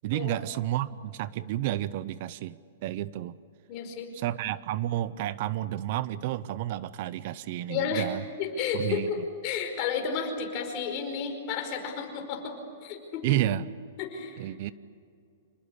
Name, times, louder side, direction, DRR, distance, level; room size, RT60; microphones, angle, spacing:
voice 1, 0.0-3.4 4.1-8.2 8.7-9.1 13.2-13.7 14.4-14.7, right 13 dB, 45° right, 18 dB, 0.6 m, -31 dB
voice 2, 3.7-4.1 7.7-8.1 8.4-12.6 12.8-13.4 14.0-14.5, left 6 dB, 35° left, 3 dB, 5.0 m, -32 dB
26.5 x 20.0 x 8.4 m, 2.3 s
hypercardioid pair, 155°, 0 cm